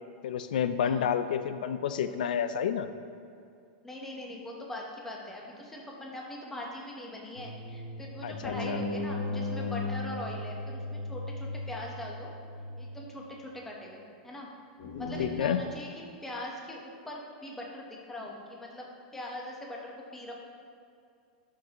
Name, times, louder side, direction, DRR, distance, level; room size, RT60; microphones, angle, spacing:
voice 1, 0.2-2.9 8.2-8.8 15.2-15.6, left 8 dB, 80° left, 11 dB, 0.4 m, -29 dB
voice 2, 0.8-1.1 3.8-12.3 12.8-14.5 15.0-15.9 16.2-18.8 19.1-20.3, left 1 dB, 5° left, -2 dB, 0.9 m, -41 dB
sound 1, 7.4-13.5 14.8-15.3, left 2 dB, 60° left, 1.0 m, -36 dB
11.5 x 6.5 x 2.9 m, 2.4 s
supercardioid pair, 160°, 4 cm